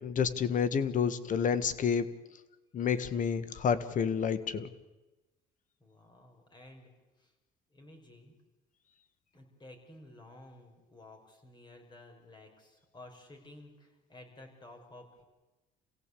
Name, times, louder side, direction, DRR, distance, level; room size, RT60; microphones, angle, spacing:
voice 1, 0.0-2.1 2.7-4.7, left 7 dB, 50° left, 13 dB, 1.6 m, -29 dB
voice 2, 5.8-6.9 7.2-7.3 7.7-8.3 9.3-15.2, left 1 dB, 25° left, 3 dB, 6.0 m, -53 dB
27.5 x 16.0 x 8.5 m, 1.1 s
cardioid pair, 110°, 17 cm